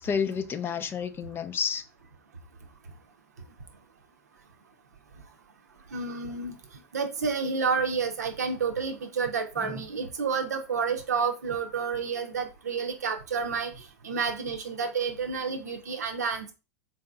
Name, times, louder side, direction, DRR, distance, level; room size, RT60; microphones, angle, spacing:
voice 1, 0.0-1.8 9.6-9.8, left 6 dB, 25° left, 11 dB, 0.4 m, -30 dB
voice 2, 5.9-6.6 6.9-13.7 14.0-16.5, right 5 dB, 80° right, 5 dB, 0.6 m, -30 dB
3.9 x 2.6 x 2.3 m, 0.30 s
hypercardioid pair, 90°, 9 cm